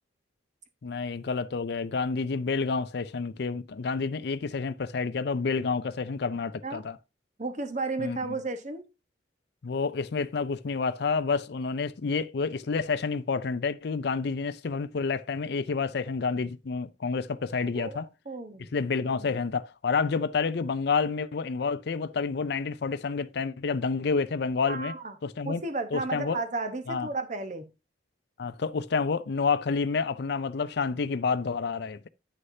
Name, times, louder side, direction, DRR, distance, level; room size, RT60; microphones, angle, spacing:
voice 1, 0.8-7.0 8.0-8.4 9.6-18.1 18.7-24.9 25.2-25.6 25.9-26.4 26.9-27.1 28.4-32.1, left 4 dB, 60° left, 0.4 m, -29 dB
voice 2, 7.4-8.8 17.6-18.7 24.7-25.1 25.4-27.7, right 3 dB, 40° right, 1.0 m, -33 dB
9.2 x 6.5 x 2.7 m
head